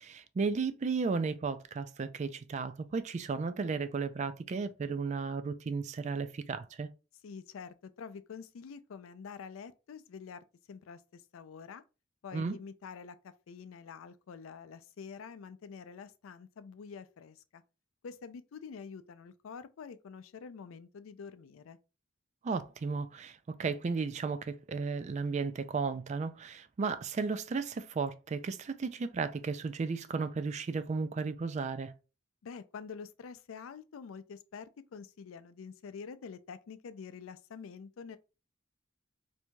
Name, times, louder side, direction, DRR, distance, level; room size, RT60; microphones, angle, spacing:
voice 1, 0.0-6.9 12.3-12.6 22.4-31.9, right 4 dB, 35° right, 0.3 m, -34 dB
voice 2, 7.2-11.8 12.2-17.6 18.0-21.8 32.4-38.2, left 6 dB, 90° left, 0.4 m, -47 dB
4.5 x 2.7 x 2.2 m
head